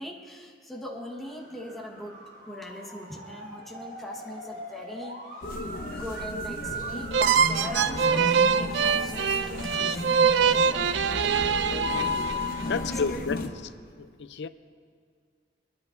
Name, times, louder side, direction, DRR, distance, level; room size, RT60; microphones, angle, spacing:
voice 1, 0.0-2.2 2.5-5.2 6.0-10.0 10.5-12.0 12.6-13.0 13.4-13.5, left 1 dB, ahead, -1 dB, 1.2 m, -41 dB
Motor vehicle (road) / Siren, 1.0-13.7, right 2 dB, 50° right, 3.9 m, -43 dB
sound 1, 5.4-13.5, left 2 dB, 55° left, 0.8 m, -34 dB
sound 2, 7.1-12.6, right 6 dB, 85° right, 0.4 m, -24 dB
voice 2, 12.6-13.5 14.2-14.5, left 5 dB, 75° left, 13 dB, 0.5 m, -30 dB
25.0 x 10.5 x 2.6 m, 2.1 s
head